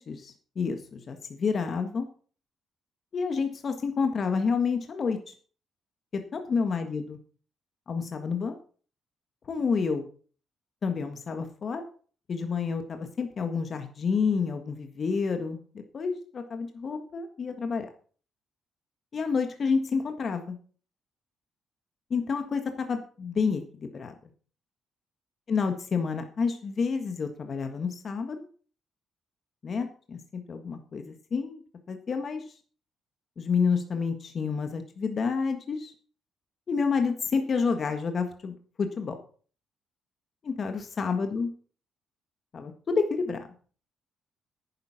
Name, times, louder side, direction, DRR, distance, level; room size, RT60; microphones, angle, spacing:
voice 1, 0.0-2.1 3.1-5.3 6.3-7.2 7.9-8.6 9.5-10.0 10.8-11.8 12.3-15.6 15.9-17.9 19.1-20.6 22.1-24.1 25.5-28.4 29.6-31.6 31.9-32.4 33.4-35.9 36.7-39.1 40.4-41.5 42.5-43.4, left 5 dB, 45° left, 7 dB, 1.6 m, -29 dB
10.5 x 9.8 x 5.9 m, 0.42 s
cardioid pair, 110°, 0 cm